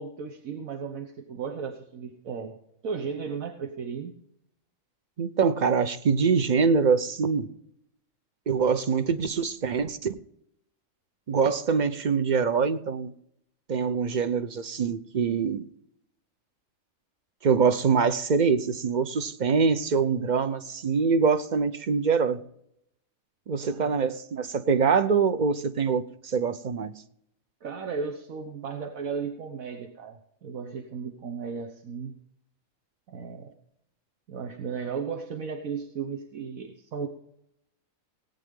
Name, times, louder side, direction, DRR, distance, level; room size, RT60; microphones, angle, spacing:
voice 1, 0.0-4.1 23.6-24.0 27.6-32.1 33.1-33.5 34.3-37.1, right 6 dB, 80° right, 1.5 m, -35 dB
voice 2, 5.2-7.5 8.5-10.2 11.3-13.1 13.7-15.6 17.4-22.4 23.5-26.9, right 5 dB, 40° right, 0.7 m, -24 dB
18.5 x 9.0 x 3.7 m
omnidirectional pair, 1.4 m